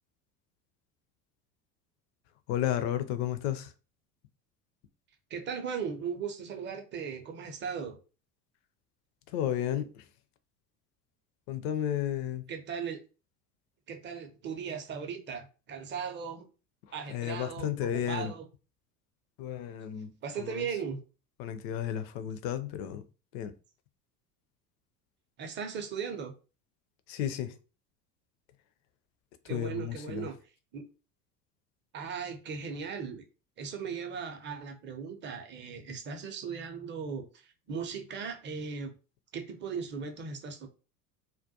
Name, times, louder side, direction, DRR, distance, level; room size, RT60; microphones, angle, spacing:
voice 1, 2.5-3.7 9.3-10.1 11.5-12.5 17.1-18.3 19.4-20.7 21.4-23.0 23.3-23.5 27.1-27.5 29.5-30.3, left 10 dB, 45° left, 0.4 m, -33 dB
voice 2, 5.3-8.0 12.5-13.0 13.9-16.5 16.9-18.5 20.2-21.0 25.4-26.3 29.5-30.4 30.7-30.8 31.9-33.2 33.6-38.9 39.3-40.7, right 6 dB, 25° right, 0.5 m, -37 dB
2.3 x 2.1 x 2.6 m
figure-of-eight pair, 75°, 48 cm